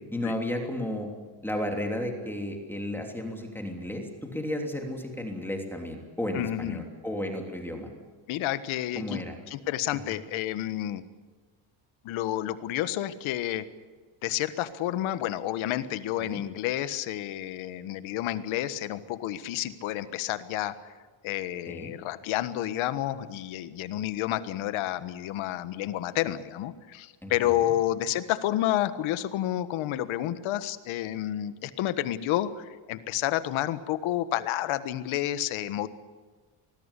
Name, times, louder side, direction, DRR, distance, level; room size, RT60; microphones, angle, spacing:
voice 1, 0.1-1.1 1.4-7.9 8.9-9.4 16.2-16.4 21.7-21.9 27.2-27.7, left 1 dB, 5° left, 2 dB, 3.2 m, -33 dB
voice 2, 6.3-6.9 8.3-9.2 9.5-11.0 12.0-13.6 14.2-20.9 21.2-35.9, left 13 dB, 70° left, 12 dB, 1.6 m, -30 dB
26.0 x 20.0 x 8.3 m, 1.4 s
cardioid pair, 150°, 50 cm